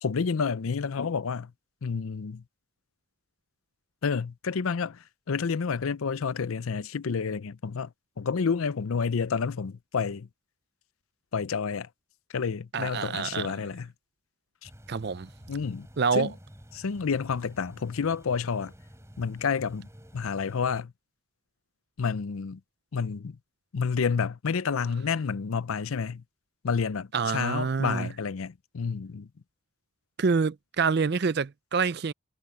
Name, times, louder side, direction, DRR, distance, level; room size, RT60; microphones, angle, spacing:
voice 1, 0.0-1.5 1.8-2.4 4.0-10.3 11.3-11.9 12.3-13.9 14.6-14.7 15.5-15.9 16.1-16.3 16.7-18.7 19.2-20.9 22.0-22.6 22.9-23.4 23.7-26.2 26.6-29.3, left 5 dB, 85° left, 0.5 m, -29 dB
voice 2, 12.7-13.5 14.9-15.3 16.0-16.3 27.1-28.1 30.2-32.1, right 5 dB, 50° right, 0.5 m, -27 dB
sound 1, 14.6-20.8, equal, 15° right, 7.2 m, -50 dB
head